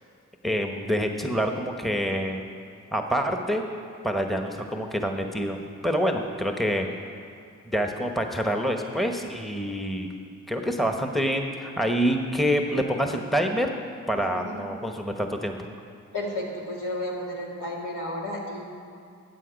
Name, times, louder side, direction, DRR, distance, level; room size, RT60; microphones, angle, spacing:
voice 1, 0.4-2.4 2.9-3.6 4.0-5.6 5.8-6.9 7.7-10.1 10.5-13.7 14.1-15.6, equal, ahead, 4 dB, 1.0 m, -26 dB
voice 2, 14.1-14.5 16.1-18.6, left 1 dB, 75° left, -3 dB, 2.3 m, -32 dB
13.0 x 8.1 x 5.2 m, 2.4 s
cardioid pair, 50°, 32 cm